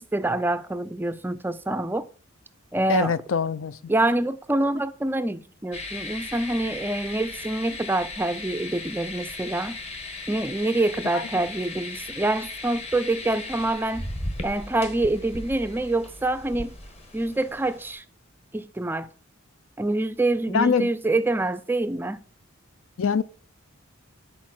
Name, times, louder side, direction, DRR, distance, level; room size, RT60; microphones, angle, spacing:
voice 1, 0.0-2.1 2.7-3.1 3.9-9.8 10.3-14.1 14.4-16.7 17.1-18.0 18.5-19.1 19.8-22.2, right 2 dB, 10° right, 0.4 m, -26 dB
voice 2, 2.9-3.9 11.1-11.3 20.5-20.9 23.0-23.2, left 6 dB, 70° left, 0.5 m, -24 dB
sound 1, 5.7-17.9, left 2 dB, 30° left, 1.3 m, -37 dB
9.6 x 4.5 x 6.1 m
head